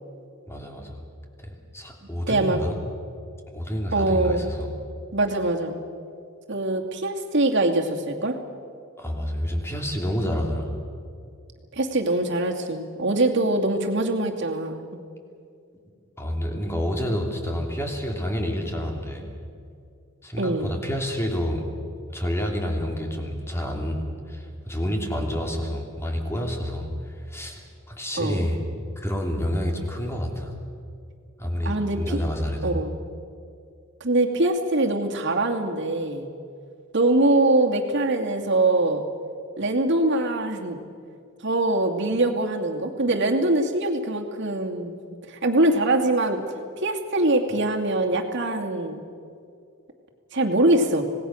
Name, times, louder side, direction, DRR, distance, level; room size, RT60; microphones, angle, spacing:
voice 1, 0.5-1.0 1.4-2.8 3.5-4.7 9.0-10.7 16.2-19.3 20.2-21.6 22.1-28.6 29.0-30.5 31.4-32.8, equal, 15° left, 2 dB, 3.1 m, -29 dB
voice 2, 2.3-2.6 3.9-4.5 5.1-5.7 6.5-8.4 11.7-14.8 20.4-20.7 28.2-28.4 31.6-32.2 32.6-32.9 34.0-36.3 36.9-39.0 39.6-40.8 41.4-45.0 45.3-46.4 46.8-49.0 50.3-51.0, right 2 dB, 60° right, 2 dB, 2.5 m, -23 dB
26.5 x 19.0 x 6.5 m, 2.3 s
head